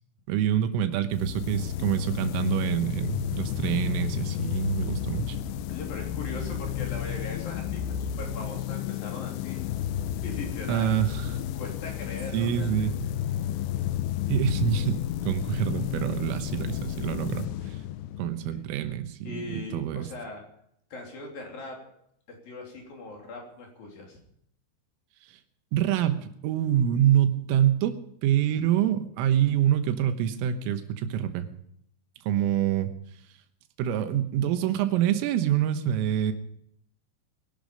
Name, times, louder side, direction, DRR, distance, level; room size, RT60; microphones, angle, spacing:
voice 1, 0.3-5.4 10.7-11.4 12.3-12.9 14.3-17.8 18.2-20.1 25.7-31.5 32.2-32.9 33.8-36.3, right 10 dB, 90° right, 9 dB, 3.8 m, -26 dB
sound 1, 1.1-18.6, left 11 dB, 85° left, 2.5 m, -32 dB
voice 2, 5.7-9.6 10.2-10.9 11.5-12.9 18.5-18.6 19.3-20.5 20.9-21.8 22.3-24.2, left 2 dB, 50° left, 0 dB, 4.6 m, -40 dB
22.0 x 11.5 x 5.2 m, 0.71 s
omnidirectional pair, 5.7 m